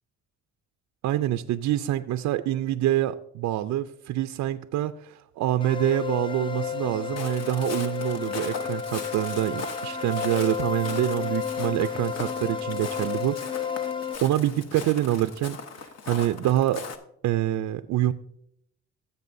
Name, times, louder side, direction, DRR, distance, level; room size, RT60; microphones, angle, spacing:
voice 1, 1.0-13.7 14.2-16.8 17.2-18.1, right 13 dB, 70° right, 9 dB, 0.4 m, -26 dB
sound 1, 5.6-14.2, left 7 dB, 15° left, 0.4 m, -32 dB
Walk footsteps, 7.2-17.0, left 5 dB, 60° left, 1.0 m, -39 dB
16.5 x 7.3 x 2.6 m, 0.76 s
cardioid pair, 90°, 30 cm